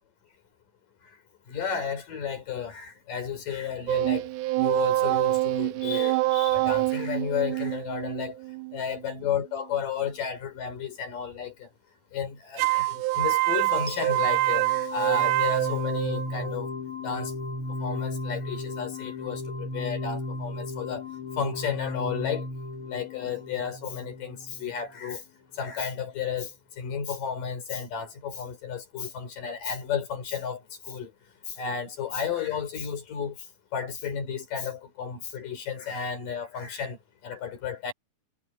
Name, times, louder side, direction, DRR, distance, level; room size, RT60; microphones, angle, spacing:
voice 1, 1.5-4.3 4.6-8.4 8.7-11.7 12.1-16.7 17.0-17.3 17.8-21.1 21.4-22.5 22.9-25.2 25.6-31.1 31.5-33.4 33.7-37.0 37.2-37.9, left 7 dB, 85° left, 5.5 m, -33 dB
sound 1, 3.9-9.2 12.6-16.5, right 19 dB, 80° right, 1.9 m, -26 dB
sound 2, 13.9-24.8, left 2 dB, 40° left, 6.0 m, -35 dB
omnidirectional pair, 3.7 m